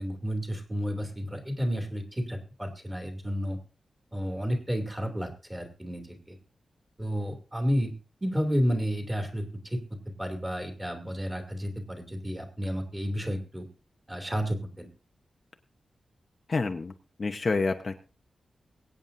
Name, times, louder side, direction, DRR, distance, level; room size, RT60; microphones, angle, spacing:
voice 1, 0.0-3.6 4.1-6.3 7.0-7.9 8.2-9.8 10.2-13.7 14.1-14.9, equal, 10° right, 4 dB, 2.7 m, -31 dB
voice 2, 16.5-16.9 17.2-18.0, left 3 dB, 35° left, 5 dB, 0.8 m, -28 dB
22.5 x 9.0 x 2.6 m, 0.34 s
wide cardioid pair, 165°, 0 cm